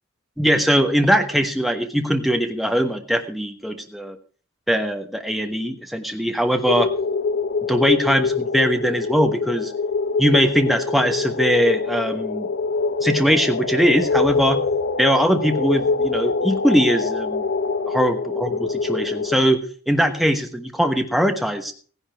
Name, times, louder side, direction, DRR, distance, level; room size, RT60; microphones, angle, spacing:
voice 1, 0.4-4.2 4.7-6.9 7.7-9.7 10.2-12.5 13.0-14.6 15.0-17.4 17.9-19.6 19.9-21.7, equal, ahead, 4 dB, 1.1 m, -21 dB
sound 1, 6.6-19.4, left 4 dB, 55° left, 0.9 m, -24 dB
17.0 x 10.5 x 4.5 m, 0.41 s
head